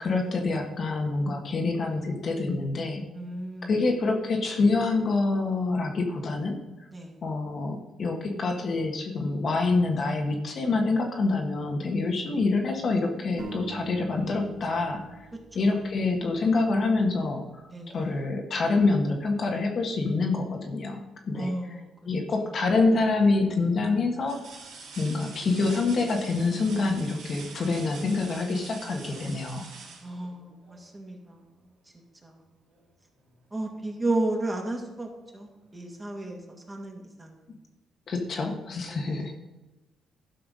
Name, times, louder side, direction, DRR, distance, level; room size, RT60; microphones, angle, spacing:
voice 1, 0.0-3.0 3.6-6.6 7.2-15.3 15.5-17.6 17.9-21.5 22.0-24.4 25.0-29.6 38.1-39.3, left 3 dB, 50° left, 2 dB, 1.6 m, -26 dB
voice 2, 3.1-3.7 6.9-7.1 17.7-18.1 21.3-21.9 30.0-31.4 32.2-32.4 33.5-37.5 38.9-39.3, right 2 dB, 20° right, 0 dB, 2.3 m, -33 dB
sound 1, 13.4-17.0, right 4 dB, 65° right, 3.0 m, -45 dB
sound 2, 22.5-23.0 23.5-23.6 24.2-30.9 32.7-32.8 33.3-34.3 35.6-35.7, right 4 dB, 90° right, 3.2 m, -46 dB
12.0 x 5.7 x 5.4 m, 1.1 s
cardioid pair, 90°, 0 cm